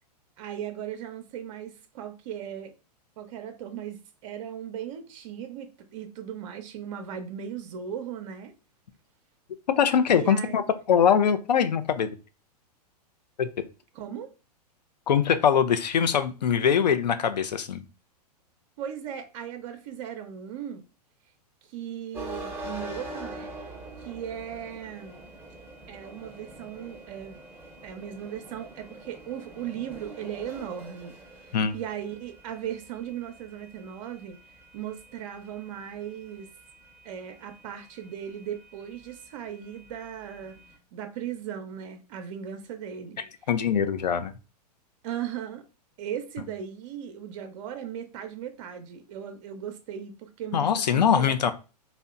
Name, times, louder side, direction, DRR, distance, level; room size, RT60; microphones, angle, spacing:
voice 1, 0.4-2.7 3.2-8.5 10.1-10.6 13.9-14.3 18.8-20.8 21.7-23.5 24.0-25.2 25.9-27.4 27.8-31.1 31.4-34.4 34.7-36.5 37.0-40.6 40.9-43.2 45.0-45.6 46.0-51.5, right 9 dB, 50° right, 0.5 m, -37 dB
voice 2, 9.8-10.6 10.9-12.1 13.4-13.5 15.1-17.8 31.5-31.7 43.5-44.3 50.5-51.5, left 8 dB, 85° left, 0.4 m, -22 dB
sound 1, 22.1-40.8, right 2 dB, 10° right, 0.7 m, -45 dB
2.8 x 2.1 x 2.3 m
hypercardioid pair, 110°, 21 cm